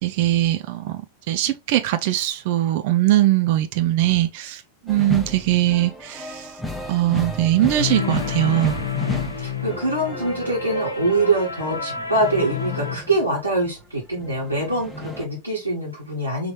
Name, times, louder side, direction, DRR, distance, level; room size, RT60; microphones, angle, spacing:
voice 1, 0.0-1.0 1.3-6.5 6.9-8.8, right 14 dB, 50° right, 0.5 m, -21 dB
sound 1, 4.9-13.6 14.0-15.3, left 1 dB, ahead, 0.8 m, -34 dB
sound 2, 7.8-13.0, left 6 dB, 75° left, 0.8 m, -29 dB
voice 2, 8.9-16.5, right 2 dB, 85° right, 1.5 m, -24 dB
3.9 x 3.0 x 3.3 m
figure-of-eight pair, 90°, 0 cm